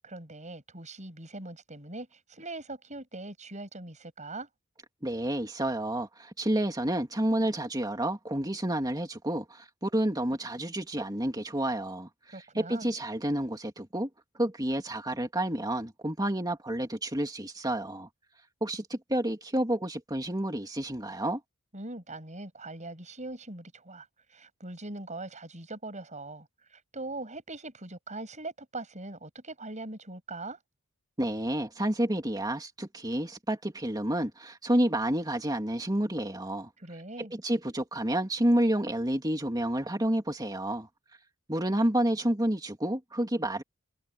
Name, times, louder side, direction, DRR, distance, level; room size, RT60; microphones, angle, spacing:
voice 1, 0.0-4.5 12.3-12.9 21.7-30.6 36.8-37.3, right 2 dB, 35° right, 7.5 m, -41 dB
voice 2, 5.0-12.1 12.5-14.1 14.4-18.1 18.6-21.4 31.2-36.7 37.3-40.9 41.5-43.6, right 1 dB, 20° right, 2.6 m, -29 dB
head